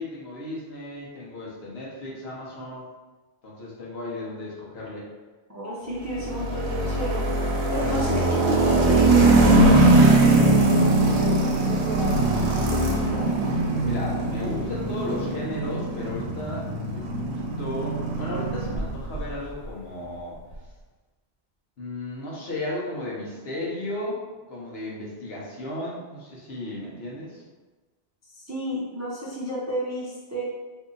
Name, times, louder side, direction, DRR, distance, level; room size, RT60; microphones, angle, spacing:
voice 1, 0.0-2.8 3.4-5.0 7.8-8.2 12.0-12.7 13.8-20.4 21.8-24.2 24.5-27.4, left 1 dB, 70° left, -5 dB, 1.1 m, -35 dB
voice 2, 5.5-12.2 12.7-13.3 28.3-30.4, equal, 20° right, -7 dB, 0.4 m, -32 dB
sound 1, 6.1-19.3, right 2 dB, 80° right, 0.9 m, -21 dB
2.7 x 2.6 x 3.7 m, 1.3 s
omnidirectional pair, 1.1 m